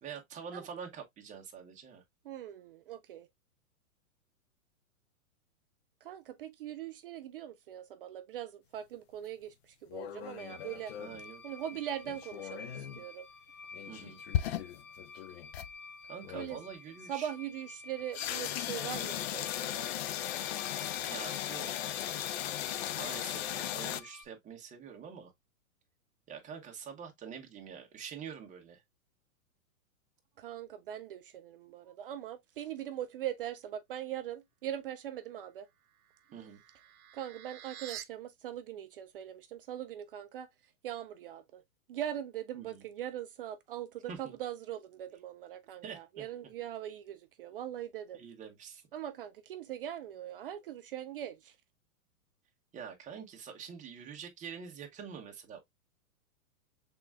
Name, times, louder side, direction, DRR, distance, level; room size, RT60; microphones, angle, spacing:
voice 1, 0.0-2.0 11.0-11.4 13.9-14.2 16.0-17.3 21.0-21.9 22.9-25.3 26.3-28.8 36.3-36.6 42.6-42.8 44.1-44.3 45.8-46.2 48.1-48.8 52.7-55.6, right 7 dB, 15° right, 1.2 m, -46 dB
voice 2, 2.2-3.3 6.0-10.9 11.4-13.3 16.3-16.6 17.1-19.9 30.4-35.7 37.1-41.6 41.9-48.2 48.9-51.6, right 11 dB, 40° right, 0.4 m, -41 dB
sound 1, 9.9-11.2 12.0-13.0 13.7-15.7 16.2-16.6 18.1-24.0, left 11 dB, 45° left, 0.5 m, -37 dB
sound 2, 10.4-24.2, left 4 dB, 25° left, 1.4 m, -51 dB
sound 3, 35.8-38.0, right 11 dB, 80° right, 0.7 m, -48 dB
5.9 x 3.7 x 2.2 m
hypercardioid pair, 125°, 44 cm